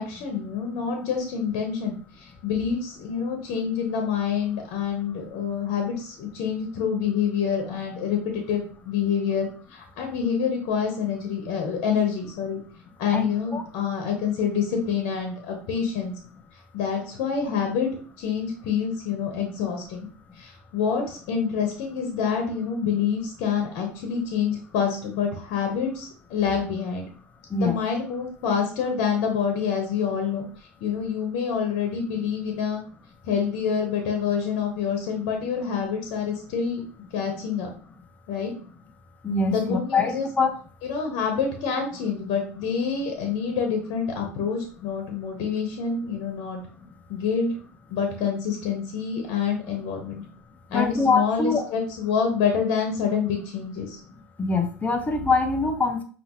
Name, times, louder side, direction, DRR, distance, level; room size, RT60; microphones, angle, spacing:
voice 1, 0.0-12.6 13.0-16.1 16.7-17.9 18.2-20.1 20.4-27.1 27.6-30.4 30.8-32.8 33.2-36.8 37.1-37.7 38.3-38.5 39.4-40.3 40.8-46.6 47.1-47.5 47.9-50.2 50.7-54.0, left 6 dB, 65° left, 3 dB, 1.3 m, -27 dB
voice 2, 13.1-13.6 27.5-27.7 39.2-40.5 50.7-51.6 54.4-56.0, left 3 dB, 20° left, 6 dB, 0.9 m, -24 dB
5.3 x 3.0 x 3.1 m, 0.42 s
supercardioid pair, 95°, 7 cm